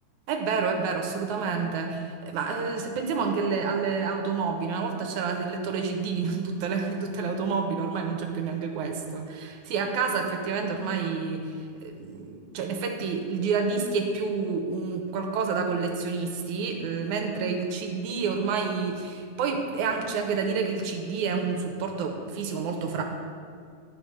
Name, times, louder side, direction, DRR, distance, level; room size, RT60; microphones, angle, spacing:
voice 1, 0.3-23.0, right 5 dB, 75° right, 3 dB, 2.1 m, -29 dB
10.5 x 5.8 x 5.1 m, 2.2 s
omnidirectional pair, 3.6 m